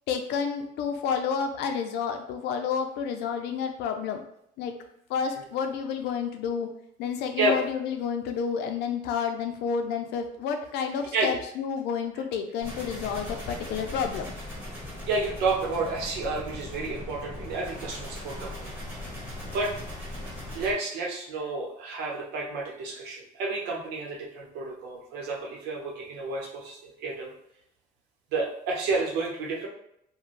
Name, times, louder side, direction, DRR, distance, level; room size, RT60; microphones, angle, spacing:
voice 1, 0.1-4.2 4.6-4.7 5.1-6.7 7.0-14.3, left 6 dB, 85° left, 6 dB, 0.4 m, -30 dB
sound 1, 12.6-20.7, left 1 dB, 10° right, 1.5 m, -39 dB
voice 2, 15.1-18.8 19.5-19.7 20.5-27.3 28.3-29.7, right 3 dB, 85° right, -2 dB, 0.8 m, -30 dB
2.5 x 2.2 x 3.1 m, 0.75 s
cardioid pair, 110°, 17 cm